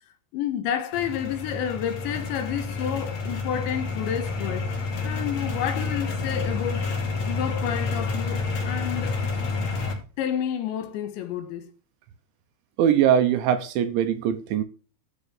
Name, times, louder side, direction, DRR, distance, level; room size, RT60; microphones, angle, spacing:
voice 1, 0.3-4.7 5.0-6.9 7.3-9.2 10.2-11.7, left 9 dB, 70° left, 3.2 m, -30 dB
sound 1, 0.9-9.9, left 4 dB, 55° left, 5.2 m, -29 dB
voice 2, 12.8-14.6, right 9 dB, 75° right, 3.0 m, -21 dB
13.5 x 5.5 x 7.2 m
omnidirectional pair, 5.9 m